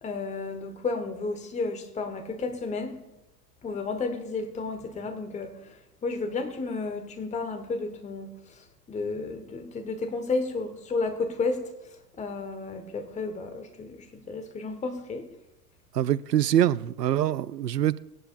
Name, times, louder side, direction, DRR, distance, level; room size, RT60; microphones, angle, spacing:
voice 1, 0.0-3.0 3.6-15.3, left 3 dB, 15° left, 1.4 m, -32 dB
voice 2, 15.9-18.0, right 11 dB, 80° right, 0.6 m, -24 dB
20.0 x 11.0 x 2.5 m
figure-of-eight pair, 90°, 48 cm